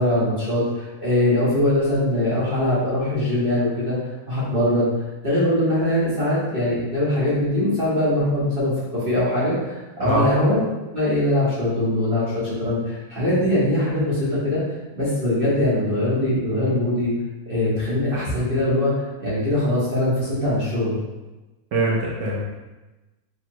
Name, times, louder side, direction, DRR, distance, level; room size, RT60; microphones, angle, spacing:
voice 1, 0.0-3.9 4.3-4.9 5.2-10.6 10.9-14.6 14.9-17.1 17.4-21.0, left 1 dB, 40° right, -9 dB, 0.9 m, -22 dB
voice 2, 21.7-22.6, right 2 dB, 65° right, -4 dB, 1.1 m, -23 dB
3.2 x 3.0 x 4.5 m, 1.1 s
omnidirectional pair, 2.3 m